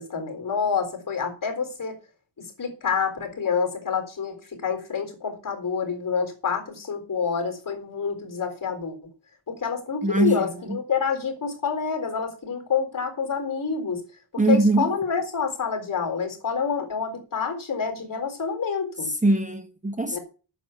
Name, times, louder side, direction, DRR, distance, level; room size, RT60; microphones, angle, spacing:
voice 1, 0.0-2.0 2.4-9.0 9.5-14.0 14.5-19.1 20.1-20.2, left 6 dB, 45° left, 3.9 m, -27 dB
voice 2, 10.0-10.8 14.4-15.0 19.1-20.2, right 2 dB, 15° right, 0.9 m, -22 dB
9.2 x 7.2 x 8.1 m
wide cardioid pair, 170°, 45 cm